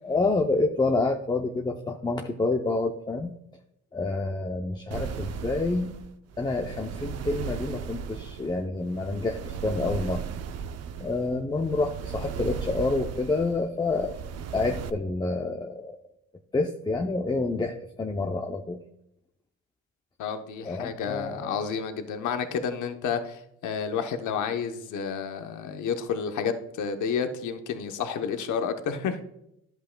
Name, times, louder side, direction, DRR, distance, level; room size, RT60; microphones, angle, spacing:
voice 1, 0.0-3.3 3.9-5.9 6.4-10.2 11.0-14.1 14.5-16.0 16.5-18.8 20.6-21.6, left 3 dB, 15° left, 4 dB, 0.6 m, -28 dB
sound 1, 4.9-14.9, right 7 dB, 55° right, 0.6 m, -36 dB
voice 2, 20.2-29.2, left 6 dB, 75° left, 7 dB, 0.9 m, -30 dB
11.0 x 7.9 x 2.2 m, 0.80 s
cardioid pair, 90°, 30 cm